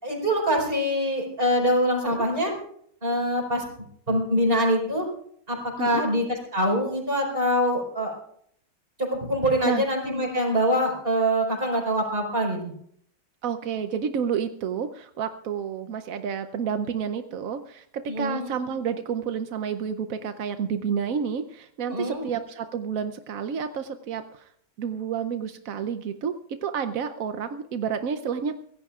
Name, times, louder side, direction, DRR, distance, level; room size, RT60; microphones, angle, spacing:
voice 1, 0.0-2.5 3.0-3.6 4.1-5.1 5.5-8.1 9.0-12.7 18.1-18.5 21.9-22.2, equal, 25° right, 0 dB, 5.0 m, -24 dB
voice 2, 13.4-24.5 24.8-26.3 26.6-28.6, right 7 dB, 65° right, 9 dB, 0.9 m, -30 dB
24.0 x 17.0 x 2.4 m, 0.65 s
omnidirectional pair, 2.2 m